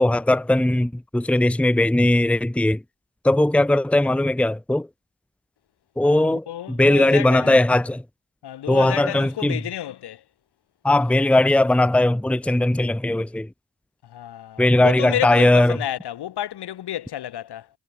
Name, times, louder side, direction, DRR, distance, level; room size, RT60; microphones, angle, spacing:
voice 1, 0.0-2.8 3.2-4.9 6.0-8.0 8.7-9.6 10.8-13.5 14.6-15.8, left 1 dB, 5° left, 0.9 m, -19 dB
voice 2, 6.0-7.6 8.4-10.2 14.0-17.7, left 11 dB, 75° left, 5.1 m, -31 dB
supercardioid pair, 45°, 40 cm